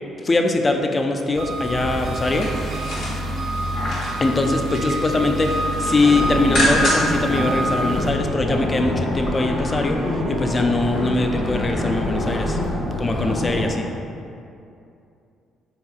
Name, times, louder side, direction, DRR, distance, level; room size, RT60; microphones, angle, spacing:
voice 1, 0.2-2.5 4.2-12.6 13.0-13.9, left 2 dB, 30° left, 4 dB, 0.3 m, -22 dB
Engine, 1.3-8.1, right 1 dB, 60° right, 0.5 m, -27 dB
sound 1, 2.1-4.2 4.6-5.1 5.4-7.2 7.6-7.7, left 1 dB, 75° left, 1.1 m, -26 dB
sound 2, 6.0-13.7, left 1 dB, 45° left, 0.8 m, -25 dB
3.7 x 2.8 x 2.3 m, 2.6 s
supercardioid pair, 65°, 0 cm